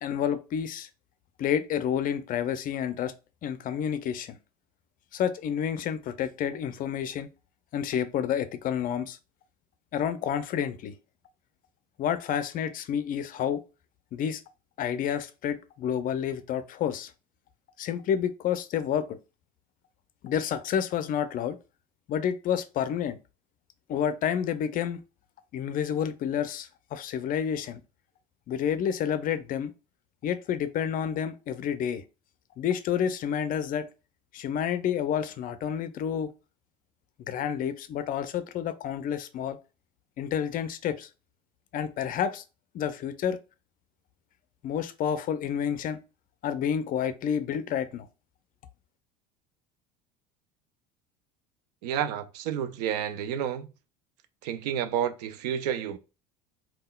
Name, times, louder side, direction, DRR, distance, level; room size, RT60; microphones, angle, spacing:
voice 1, 0.0-0.9 1.4-3.1 3.4-4.4 5.1-7.3 7.7-9.2 9.9-10.9 12.0-13.6 14.1-14.4 14.8-17.1 17.8-19.2 20.2-21.6 22.1-23.2 23.9-25.0 25.5-27.8 28.5-29.7 30.2-32.0 32.6-33.9 34.3-36.3 37.3-39.6 40.2-41.1 41.7-42.4 42.7-43.4 44.6-46.0 46.4-48.1, left 8 dB, 40° left, 0.4 m, -29 dB
voice 2, 51.8-53.7 54.4-56.0, right 9 dB, 75° right, 0.4 m, -30 dB
3.5 x 2.2 x 2.2 m
hypercardioid pair, 75°, 21 cm